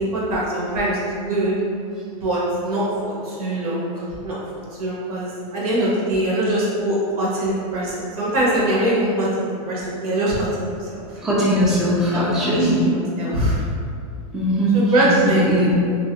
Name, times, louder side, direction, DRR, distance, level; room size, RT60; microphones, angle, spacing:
voice 1, 0.0-1.5 2.2-3.9 4.2-11.0 12.1-13.6 14.7-15.6, right 1 dB, 80° right, -6 dB, 1.0 m, -23 dB
voice 2, 11.2-12.9 14.3-15.8, equal, 5° right, -8 dB, 0.3 m, -20 dB
2.4 x 2.2 x 2.8 m, 2.3 s
supercardioid pair, 140°, 19 cm